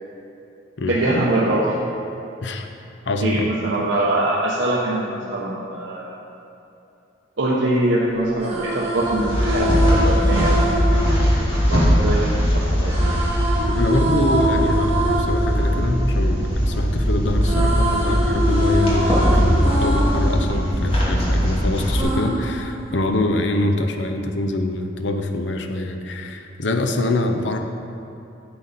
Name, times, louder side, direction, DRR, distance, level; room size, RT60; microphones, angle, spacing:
voice 1, 0.8-1.7 3.2-6.1 7.4-11.0 11.4-13.1, right 1 dB, 80° right, -5 dB, 0.9 m, -23 dB
voice 2, 3.1-3.5 13.7-27.6, left 2 dB, 70° left, 6 dB, 0.7 m, -24 dB
sound 1, 8.2-12.3 12.9-16.9 17.2-21.5 22.0-23.4, equal, 35° right, 1.7 m, -25 dB
sound 2, 8.9-22.0, equal, 30° left, 2.0 m, -20 dB
10.0 x 6.8 x 4.1 m, 2.7 s
head